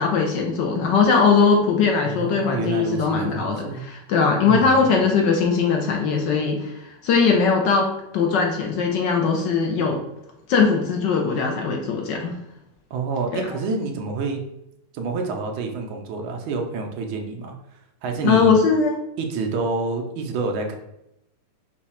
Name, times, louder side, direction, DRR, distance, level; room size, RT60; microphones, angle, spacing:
voice 1, 0.0-6.7 7.0-7.9 8.1-10.0 10.5-12.3 13.3-13.4 18.2-19.0, left 5 dB, 70° left, 1 dB, 1.2 m, -20 dB
voice 2, 2.0-3.8 4.4-4.8 12.9-14.4 14.9-17.5 18.0-18.5 19.2-20.7, right 4 dB, 75° right, 3 dB, 1.5 m, -28 dB
5.1 x 2.3 x 4.2 m, 0.84 s
omnidirectional pair, 2.3 m